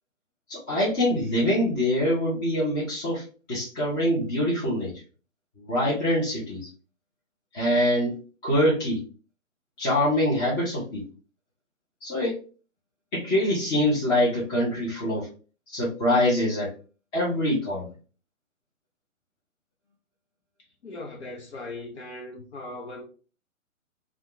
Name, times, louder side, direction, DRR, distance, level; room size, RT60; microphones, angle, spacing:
voice 1, 0.5-4.9 5.6-6.7 7.5-8.2 8.4-9.0 9.8-11.0 12.0-12.4 13.1-15.3 15.7-16.7 17.1-17.9, left 1 dB, 15° left, 0.7 m, -24 dB
voice 2, 20.8-23.0, left 2 dB, 55° left, 0.9 m, -39 dB
2.6 x 2.3 x 3.7 m
figure-of-eight pair, 130°, 41 cm